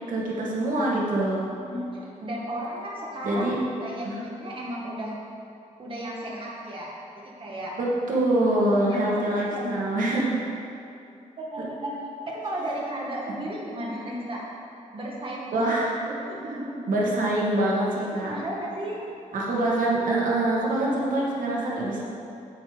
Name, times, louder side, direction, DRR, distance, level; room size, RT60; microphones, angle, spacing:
voice 1, 0.1-1.5 3.2-3.6 4.0-4.2 7.8-10.4 13.4-13.5 15.5-15.9 16.9-18.4 19.3-22.0, right 1 dB, 85° right, -4 dB, 1.9 m, -25 dB
voice 2, 2.2-3.5 3.8-5.1 5.8-7.8 8.7-9.7 11.4-11.9 12.3-14.4 14.9-15.8 16.0-16.8 18.0-19.0, right 1 dB, 40° right, -4 dB, 1.8 m, -34 dB
8.8 x 8.6 x 5.2 m, 2.6 s
wide cardioid pair, 135°, 14 cm